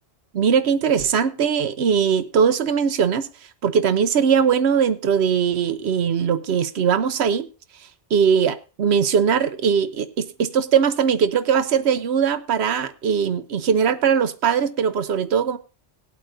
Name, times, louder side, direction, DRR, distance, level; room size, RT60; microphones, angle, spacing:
voice 1, 0.3-3.3 3.6-7.5 8.1-15.6, right 7 dB, 70° right, 1.0 m, -20 dB
19.0 x 8.2 x 2.6 m
omnidirectional pair, 1.1 m